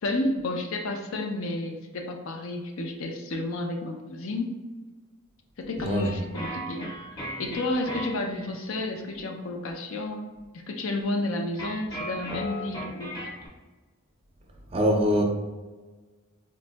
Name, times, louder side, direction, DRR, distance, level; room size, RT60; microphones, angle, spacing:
voice 1, 0.0-4.6 5.6-6.9 7.4-13.2, left 2 dB, 75° left, 3 dB, 0.5 m, -31 dB
voice 2, 5.8-6.1 14.7-15.2, equal, 25° right, 1 dB, 0.4 m, -23 dB
sound 1, 6.0-8.7 11.5-13.5, equal, 20° left, 0.6 m, -37 dB
4.0 x 2.6 x 2.2 m, 1.3 s
head